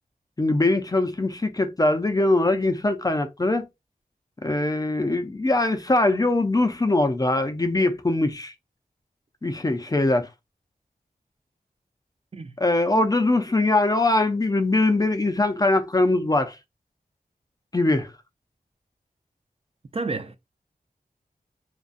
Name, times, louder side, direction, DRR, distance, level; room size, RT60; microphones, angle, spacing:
voice 1, 0.4-3.7 4.4-8.5 9.4-10.3 12.6-16.6 17.7-18.1, left 2 dB, 25° left, 0.4 m, -22 dB
voice 2, 19.9-20.4, right 3 dB, 40° right, 0.4 m, -30 dB
2.5 x 2.2 x 2.4 m
wide cardioid pair, 55°, 16 cm